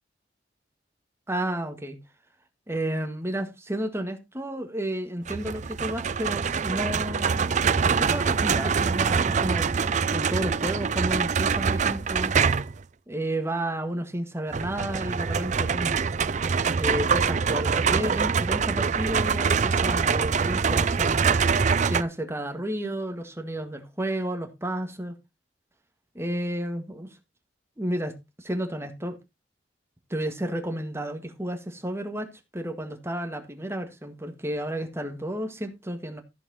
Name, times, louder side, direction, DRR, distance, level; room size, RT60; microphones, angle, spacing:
voice 1, 1.3-2.0 2.7-7.4 7.8-12.3 13.1-16.1 16.8-21.5 21.9-25.2 26.2-27.1 27.8-29.2 30.1-36.2, right 1 dB, 15° right, 1.7 m, -32 dB
sound 1, 5.3-12.8 14.5-22.0, right 5 dB, 40° right, 0.5 m, -24 dB
14.0 x 7.1 x 4.2 m
head